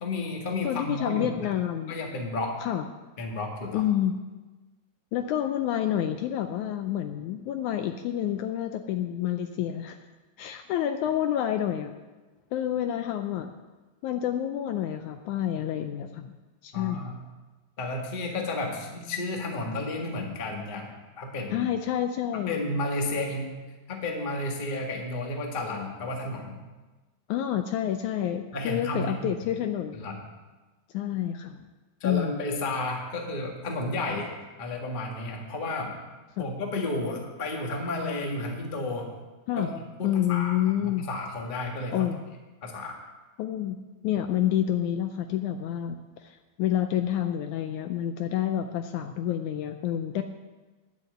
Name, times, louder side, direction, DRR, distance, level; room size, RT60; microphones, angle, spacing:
voice 1, 0.0-1.5 1.9-2.6 3.2-3.8 16.7-17.2 17.8-20.9 21.2-21.7 22.5-23.6 23.9-26.6 28.5-29.3 29.9-30.2 32.0-34.3 34.6-35.9 36.4-39.1 39.6-39.7 40.0-40.6 40.8-42.1 42.6-43.0, left 2 dB, 30° left, 1 dB, 0.8 m, -32 dB
voice 2, 0.6-1.9 2.6-2.8 3.7-4.1 5.1-10.0 10.4-11.9 12.5-13.5 14.0-16.3 16.6-17.1 21.5-22.6 27.3-30.0 30.9-31.7 32.0-32.4 36.4-36.5 39.5-39.7 40.0-41.0 41.9-42.2 43.4-43.8 44.0-50.2, left 11 dB, 75° left, 7 dB, 1.8 m, -28 dB
10.5 x 8.6 x 7.9 m, 1.2 s
omnidirectional pair, 3.8 m